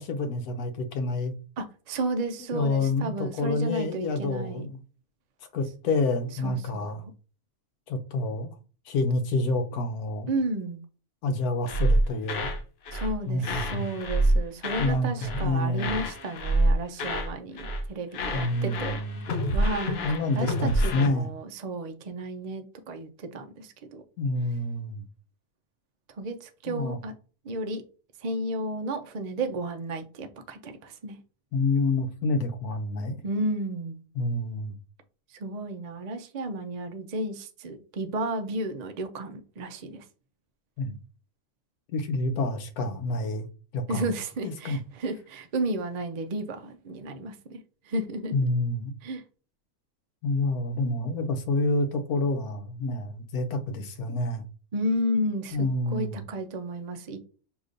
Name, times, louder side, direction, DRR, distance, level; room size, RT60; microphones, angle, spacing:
voice 1, 0.0-1.3 2.4-4.8 5.5-7.0 7.9-8.5 8.9-10.3 11.2-12.5 13.3-13.9 14.8-16.0 18.3-19.3 20.0-21.3 24.2-25.0 26.7-27.0 31.5-33.2 34.1-34.8 40.8-41.0 41.9-43.5 43.7-44.1 44.4-44.8 48.3-48.9 50.2-54.4 55.5-56.2, left 2 dB, 90° left, 1.2 m, -28 dB
voice 2, 1.6-4.7 6.4-6.8 10.3-10.8 12.9-19.0 19.5-24.0 26.2-27.1 27.4-27.8 28.2-31.2 33.2-34.0 35.4-40.0 43.9-47.6 47.9-48.3 49.0-49.2 54.7-57.2, right 1 dB, 80° right, 0.3 m, -32 dB
sound 1, 11.7-12.6 12.9-13.1 13.4-15.0 15.2-15.5 15.8-17.3 17.6-17.9 18.1-21.1, right 1 dB, 55° left, 0.8 m, -27 dB
6.5 x 3.0 x 2.5 m
omnidirectional pair, 1.5 m